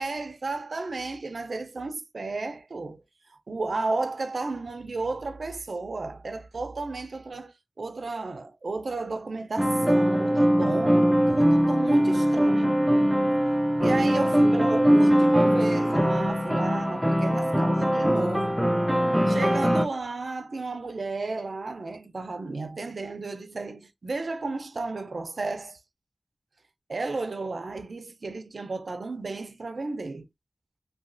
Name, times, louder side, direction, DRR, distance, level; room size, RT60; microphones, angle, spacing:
voice 1, 0.0-3.0 3.5-12.8 13.8-18.6 19.3-25.8 26.9-30.3, right 3 dB, 75° right, 0.5 m, -33 dB
sound 1, 9.6-19.8, equal, 5° right, 0.5 m, -22 dB
3.0 x 2.2 x 2.6 m
wide cardioid pair, 60°, 0 cm